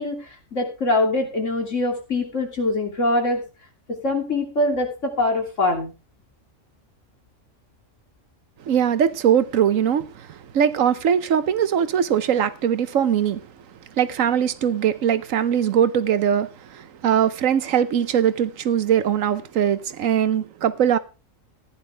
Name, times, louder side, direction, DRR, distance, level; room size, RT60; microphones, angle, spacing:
voice 1, 0.0-3.4 4.0-5.9, left 2 dB, 70° left, 3.3 m, -23 dB
voice 2, 8.7-13.4 14.0-21.0, right 9 dB, 80° right, 1.2 m, -21 dB
15.5 x 10.0 x 3.4 m
omnidirectional pair, 1.3 m